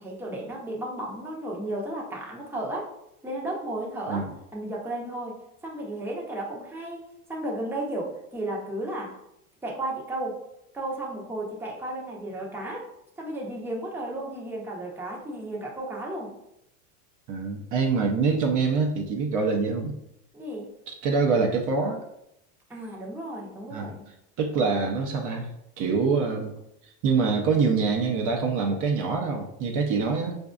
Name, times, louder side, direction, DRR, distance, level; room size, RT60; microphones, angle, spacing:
voice 1, 0.0-2.9 3.2-9.2 9.6-10.4 10.7-12.9 13.2-16.3 20.3-20.7 22.7-24.0, right 1 dB, 5° right, -2 dB, 0.8 m, -34 dB
voice 2, 17.3-20.0 20.9-22.0 23.7-23.9 24.4-25.5 25.8-26.5 26.8-30.4, right 4 dB, 45° right, 1 dB, 0.7 m, -25 dB
4.7 x 2.6 x 2.4 m, 0.80 s
hypercardioid pair, 95°, 45 cm